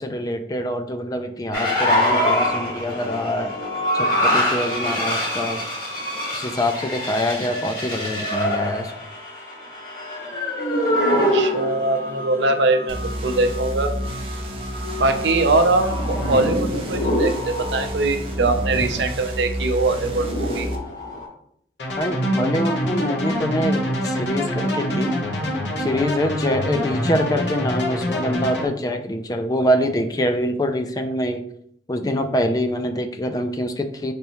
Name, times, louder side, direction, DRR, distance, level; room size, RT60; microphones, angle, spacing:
voice 1, 0.0-3.5 3.9-5.7 6.3-8.9 22.0-25.2 25.8-31.5 31.9-34.1, equal, 20° left, 7 dB, 0.4 m, -24 dB
sound 1, 1.5-21.3, left 1 dB, 55° left, 1.8 m, -25 dB
voice 2, 11.1-13.9 15.0-20.7, right 2 dB, 85° right, 6 dB, 0.6 m, -22 dB
sound 2, 12.9-20.8, equal, 30° right, 0.7 m, -30 dB
sound 3, 21.8-28.7, equal, 85° left, 1.0 m, -25 dB
5.3 x 3.4 x 2.9 m, 0.67 s
head